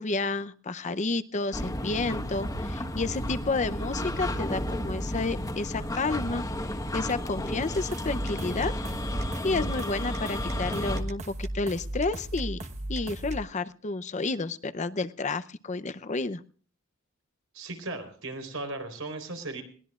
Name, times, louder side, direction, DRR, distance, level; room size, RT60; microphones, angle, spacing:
voice 1, 0.0-6.4 6.9-8.7 9.4-12.6 12.9-16.4, left 3 dB, 35° left, 12 dB, 0.6 m, -30 dB
sound 1, 1.5-11.0, left 1 dB, 15° left, 1.3 m, -33 dB
sound 2, 7.7-13.4, right 1 dB, 35° right, 1.1 m, -36 dB
voice 2, 17.5-19.6, right 2 dB, 80° right, 6 dB, 4.1 m, -36 dB
21.5 x 18.0 x 2.4 m, 0.43 s
head